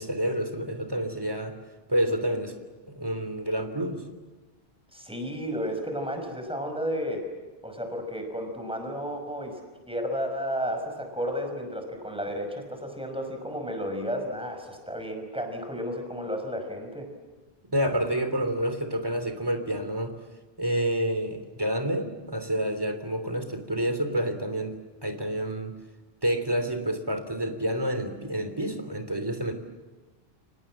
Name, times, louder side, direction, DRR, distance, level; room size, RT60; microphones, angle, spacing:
voice 1, 0.0-1.6 1.9-2.5 2.9-4.0 17.7-20.1 20.6-24.7 25.0-25.7 26.2-29.5, right 1 dB, 20° right, 8 dB, 3.3 m, -28 dB
voice 2, 4.9-7.3 7.6-9.6 9.9-17.1, equal, 5° right, 4 dB, 5.7 m, -32 dB
29.5 x 26.0 x 7.6 m, 1.2 s
omnidirectional pair, 1.1 m